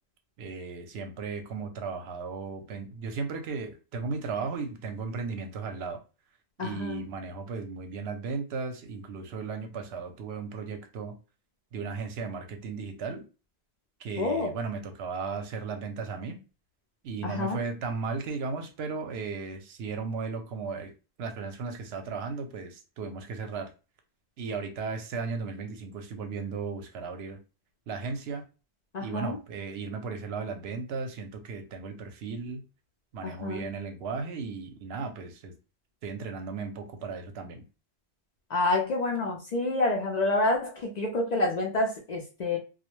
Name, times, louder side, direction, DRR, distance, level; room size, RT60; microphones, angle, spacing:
voice 1, 0.4-6.0 6.6-11.1 11.7-13.2 14.0-16.4 17.0-20.9 21.2-23.7 24.4-27.4 27.9-28.4 29.0-32.6 33.1-35.5 36.0-37.6, right 4 dB, 80° right, 0.8 m, -35 dB
voice 2, 6.6-7.1 14.2-14.5 17.2-17.6 28.9-29.4 33.2-33.6 38.5-42.6, left 2 dB, 55° left, 0.5 m, -28 dB
2.2 x 2.1 x 3.0 m
omnidirectional pair, 1.1 m